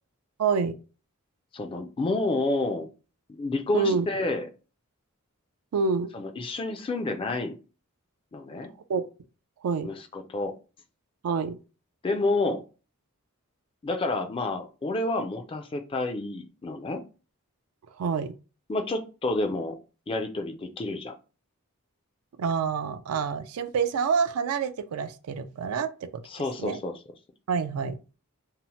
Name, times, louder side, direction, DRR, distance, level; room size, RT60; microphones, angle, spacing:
voice 1, 0.4-0.7 3.7-4.1 5.7-6.1 8.9-9.1 9.6-9.9 11.2-11.6 18.0-18.3 22.4-26.2 26.6-26.8 27.5-28.0, right 5 dB, 80° right, 0.4 m, -27 dB
voice 2, 1.5-2.9 3.3-4.5 6.1-7.6 8.3-8.7 9.8-10.5 12.0-12.6 13.8-17.0 18.7-19.8 20.1-21.1 26.2-27.0, left 2 dB, 25° left, 0.3 m, -29 dB
2.7 x 2.0 x 2.9 m
head